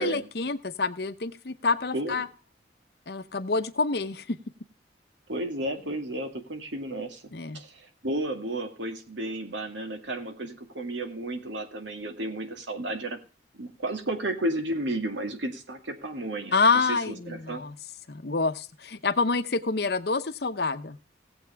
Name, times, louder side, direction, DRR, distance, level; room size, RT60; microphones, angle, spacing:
voice 1, 0.0-2.3 3.1-4.4 7.3-7.6 16.5-17.8 18.1-21.0, left 4 dB, 60° left, 12 dB, 0.8 m, -27 dB
voice 2, 5.3-13.2 13.5-17.6, right 1 dB, 90° right, 6 dB, 2.1 m, -33 dB
17.5 x 7.9 x 3.4 m, 0.35 s
head